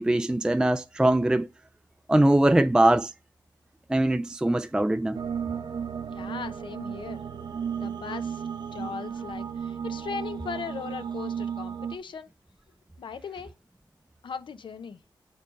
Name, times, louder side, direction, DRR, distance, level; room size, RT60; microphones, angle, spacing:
voice 1, 0.0-1.5 2.1-3.1 3.9-5.2, right 1 dB, 10° right, 0.3 m, -22 dB
sound 1, 5.1-12.0, right 7 dB, 60° right, 0.6 m, -34 dB
voice 2, 6.1-7.2 7.8-8.4 8.7-12.3 13.0-13.5 14.2-15.0, left 6 dB, 70° left, 0.8 m, -38 dB
7.3 x 3.9 x 5.1 m
wide cardioid pair, 85°, 8 cm